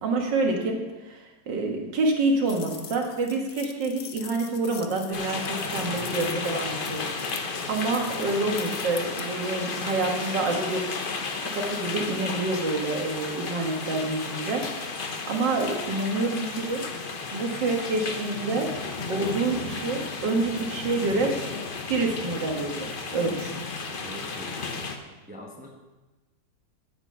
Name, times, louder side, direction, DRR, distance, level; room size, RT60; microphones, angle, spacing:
voice 1, 0.0-7.0 7.7-10.9 11.4-16.8 17.3-18.7 19.1-21.3 21.9-22.9 23.1-23.5, right 3 dB, 75° right, 2 dB, 2.1 m, -27 dB
sound 1, 2.5-9.2, left 9 dB, 80° left, 1.5 m, -43 dB
sound 2, 5.1-25.0, left 4 dB, 45° left, 0.7 m, -33 dB
voice 2, 23.2-23.6 24.0-24.8 25.3-25.7, equal, 5° right, -1 dB, 0.9 m, -42 dB
8.9 x 8.8 x 5.6 m, 1.2 s
omnidirectional pair, 2.0 m